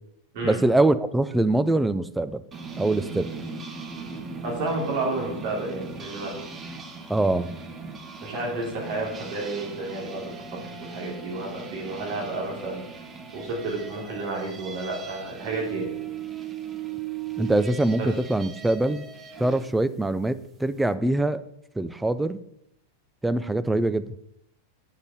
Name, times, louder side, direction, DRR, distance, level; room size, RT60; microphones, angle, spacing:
voice 1, 0.4-2.4 2.8-3.3 7.1-7.5 17.4-19.1 19.4-21.4 21.8-22.4 23.2-24.1, right 2 dB, 5° right, 13 dB, 0.4 m, -23 dB
sound 1, 2.5-19.7, right 6 dB, 20° right, 1.0 m, -38 dB
voice 2, 4.4-6.4 8.2-12.8 13.3-15.9 18.0-18.1, right 2 dB, 45° right, -2 dB, 3.0 m, -31 dB
8.3 x 5.2 x 6.3 m, 0.77 s
figure-of-eight pair, 90°, 0 cm